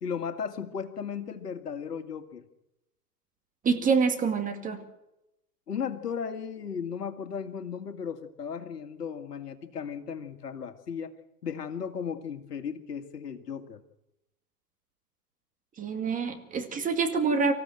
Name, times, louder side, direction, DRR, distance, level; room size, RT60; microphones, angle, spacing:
voice 1, 0.0-2.5 5.7-11.1 11.4-13.8, left 7 dB, 75° left, 8 dB, 2.1 m, -35 dB
voice 2, 3.6-4.8 15.8-17.5, right 5 dB, 15° right, 6 dB, 2.3 m, -26 dB
24.5 x 15.0 x 7.8 m, 0.90 s
hypercardioid pair, 120°, 48 cm